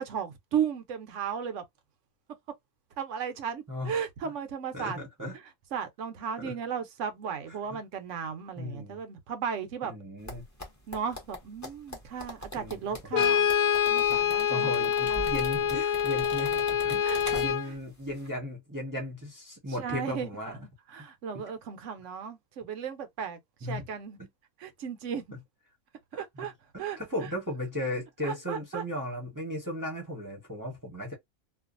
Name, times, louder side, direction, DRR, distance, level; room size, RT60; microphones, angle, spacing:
voice 1, 0.0-1.6 3.0-5.0 5.7-9.9 10.9-13.5 13.9-14.8 15.1-15.3 17.0-17.2 19.8-20.6 20.9-24.2 24.6-25.4 26.1-26.5 26.8-27.0 28.2-28.8, right 7 dB, 65° right, 0.9 m, -35 dB
voice 2, 3.7-4.0 4.7-5.3 6.4-6.5 7.7-7.8 8.6-9.0 9.8-10.4 12.6-12.8 13.1-13.3 14.1-17.1 17.3-20.6 23.6-23.8 24.2-24.3 26.3-26.5 26.7-31.1, left 1 dB, 15° right, 0.8 m, -36 dB
sound 1, 10.2-17.8 18.1-18.3, equal, 15° left, 0.8 m, -42 dB
Brass instrument, 13.1-17.7, left 8 dB, 70° left, 1.0 m, -26 dB
2.5 x 2.4 x 2.4 m
omnidirectional pair, 1.5 m